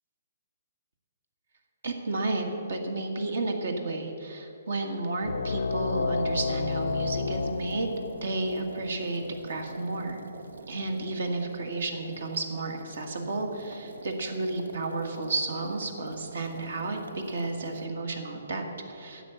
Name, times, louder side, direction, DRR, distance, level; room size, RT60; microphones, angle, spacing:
voice 1, 1.8-7.9 8.2-10.2 10.7-19.2, right 2 dB, 75° right, 4 dB, 1.7 m, -32 dB
sound 1, 4.7-17.9, right 3 dB, 90° right, 0.7 m, -46 dB
sound 2, 5.2-10.3, left 4 dB, 80° left, 0.6 m, -31 dB
10.0 x 8.2 x 8.2 m, 2.9 s
hypercardioid pair, 140°, 0 cm